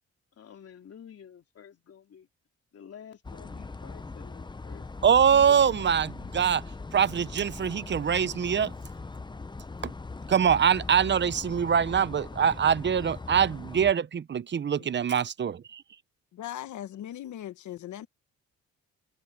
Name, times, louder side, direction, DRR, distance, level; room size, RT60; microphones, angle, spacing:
voice 1, 0.4-2.3 2.7-5.9, left 8 dB, 50° left, 3.5 m, -49 dB
sound 1, 3.2-13.9, left 3 dB, 15° left, 0.8 m, -40 dB
voice 2, 5.0-6.6 6.9-8.7 9.8-9.9 10.3-15.8, right 7 dB, 35° right, 0.8 m, -24 dB
voice 3, 7.1-7.4 14.8-14.9 16.3-18.1, left 12 dB, 75° left, 1.3 m, -40 dB
cardioid pair, 90°, 30 cm